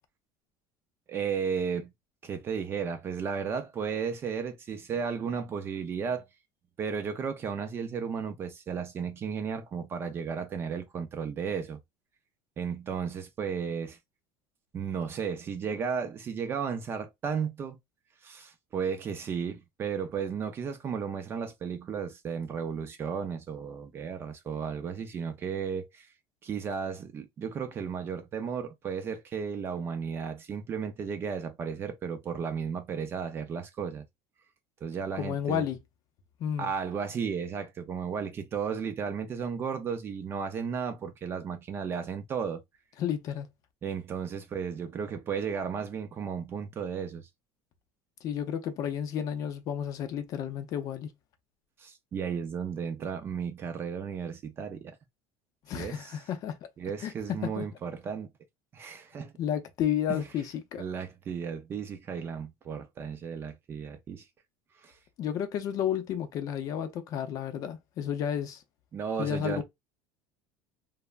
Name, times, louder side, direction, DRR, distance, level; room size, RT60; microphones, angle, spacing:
voice 1, 1.1-1.9 2.2-6.3 6.8-11.8 12.6-14.0 14.7-17.8 18.2-26.1 26.4-34.1 34.8-35.7 36.6-42.6 43.8-47.3 51.8-55.0 55.7-56.1 56.8-58.3 58.7-59.3 60.1-60.2 60.8-64.2 64.8-65.0 68.9-69.6, right 6 dB, 25° right, 0.4 m, -34 dB
voice 2, 35.2-35.8 36.4-36.7 43.0-43.5 48.2-51.1 55.7-56.6 57.0-57.1 57.4-57.7 59.4-60.8 65.2-68.6 69.2-69.6, left 9 dB, 40° left, 0.5 m, -32 dB
3.2 x 2.0 x 2.3 m
cardioid pair, 160°, 9 cm